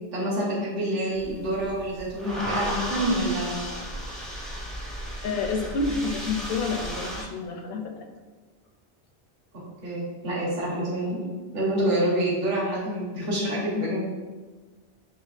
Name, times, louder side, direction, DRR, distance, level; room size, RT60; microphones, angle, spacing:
voice 1, 0.1-3.5 9.8-11.3 11.5-14.0, right 1 dB, 65° right, -6 dB, 1.2 m, -27 dB
sound 1, 1.1-7.2, equal, ahead, 0.5 m, -34 dB
voice 2, 5.2-7.9 13.7-14.0, left 4 dB, 70° left, 4 dB, 0.8 m, -29 dB
5.6 x 2.9 x 2.4 m, 1.4 s
omnidirectional pair, 1.1 m